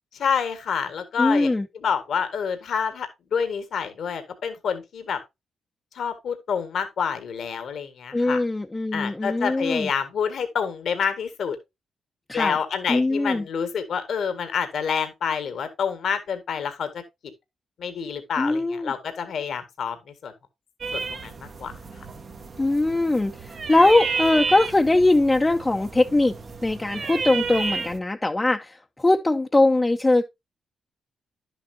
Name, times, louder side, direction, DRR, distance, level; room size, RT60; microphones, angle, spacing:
voice 1, 0.2-1.5 1.8-5.2 5.9-8.4 8.9-11.6 12.3-16.9 17.8-20.0 20.2-20.3 20.9-21.7, left 7 dB, 70° left, 1.6 m, -28 dB
voice 2, 1.2-1.7 8.1-9.9 12.3-12.6 12.9-13.5 18.4-18.9 22.6-26.3 26.6-30.2, left 2 dB, 20° left, 0.8 m, -21 dB
sound 1, 20.8-28.0, right 4 dB, 50° right, 1.4 m, -32 dB
10.5 x 7.0 x 2.7 m
supercardioid pair, 60°, 0 cm